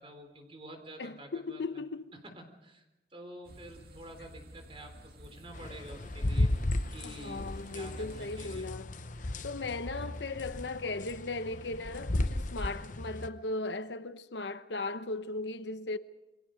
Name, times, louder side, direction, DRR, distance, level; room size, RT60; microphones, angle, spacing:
voice 1, 0.0-1.8 2.1-2.8 3.1-6.5 6.9-8.7, right 1 dB, 30° right, 3.7 m, -49 dB
voice 2, 1.0-2.1 7.0-8.9 9.4-16.0, left 3 dB, 75° left, 1.0 m, -37 dB
sound 1, 3.4-8.6, equal, 55° right, 2.8 m, -51 dB
sound 2, 5.5-13.3, left 1 dB, 45° left, 0.9 m, -35 dB
28.5 x 23.0 x 5.2 m
head